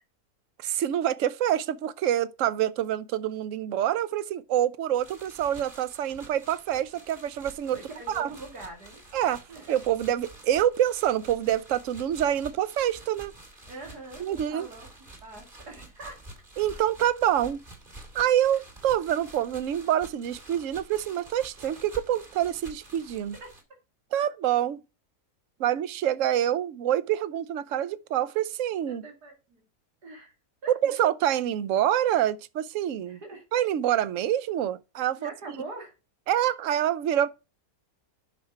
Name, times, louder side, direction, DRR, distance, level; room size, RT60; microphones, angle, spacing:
voice 1, 0.6-7.8 8.1-8.3 9.1-13.3 14.2-14.7 16.6-17.6 18.1-23.4 24.1-24.8 25.6-29.0 30.7-33.2 33.5-35.3 36.3-37.3, right 11 dB, 65° right, 1.0 m, -26 dB
sound 1, 5.0-23.6, right 2 dB, 35° right, 3.0 m, -49 dB
voice 2, 7.7-9.0 9.5-9.7 13.7-14.9 15.2-16.3 23.4-23.5 28.9-29.6 30.0-30.3 30.6-31.0 33.1-33.4 35.2-35.9, right 2 dB, 85° right, 3.0 m, -43 dB
9.5 x 6.2 x 5.8 m
omnidirectional pair, 1.6 m